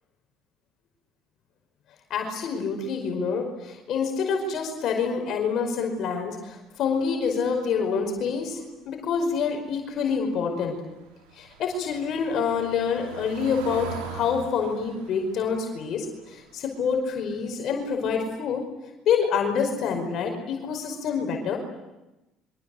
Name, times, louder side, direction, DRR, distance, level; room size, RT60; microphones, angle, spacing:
voice 1, 2.1-10.8 11.4-18.6 19.1-21.6, left 6 dB, 60° left, 3 dB, 5.2 m, -27 dB
Car passing by / Engine, 10.4-17.4 17.7-18.0 18.2-18.3, right 6 dB, 90° right, 5.0 m, -42 dB
28.0 x 25.0 x 7.9 m, 1.0 s
supercardioid pair, 80°, 0 cm